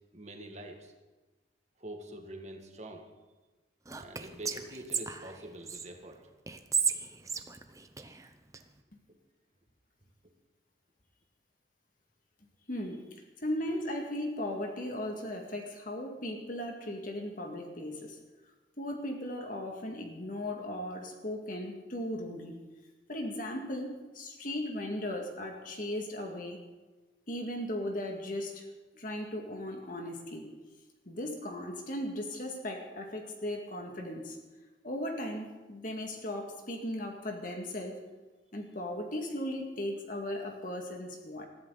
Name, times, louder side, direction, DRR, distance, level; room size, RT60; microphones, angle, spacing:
voice 1, 0.1-0.9 1.8-3.1 4.0-6.2, right 1 dB, 40° right, 3 dB, 1.9 m, -45 dB
Whispering, 3.9-5.9 6.5-8.6, right 6 dB, 15° right, 0.7 m, -34 dB
voice 2, 12.7-13.0 13.4-18.2 18.8-22.6 23.1-26.6 27.3-28.7 28.9-30.5 31.1-34.4 34.8-38.0 38.5-41.4, left 1 dB, 45° left, 2 dB, 2.0 m, -37 dB
20.5 x 14.5 x 4.0 m, 1.2 s
head